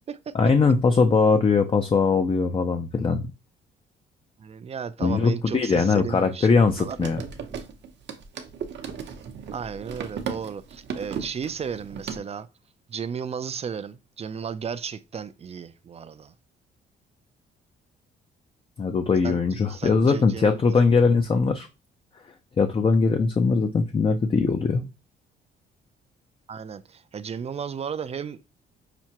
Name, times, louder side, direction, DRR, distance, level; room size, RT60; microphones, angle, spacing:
voice 1, 0.3-3.3 5.0-7.2 18.8-21.7 22.6-24.8, left 4 dB, 25° left, 0.4 m, -21 dB
voice 2, 4.4-7.0 9.5-12.5 12.9-16.3 19.2-19.4 19.7-20.6 26.5-28.4, right 7 dB, 30° right, 0.4 m, -34 dB
sound 1, 6.7-12.2, right 7 dB, 65° right, 0.8 m, -36 dB
5.9 x 2.1 x 2.8 m
cardioid pair, 90°, 20 cm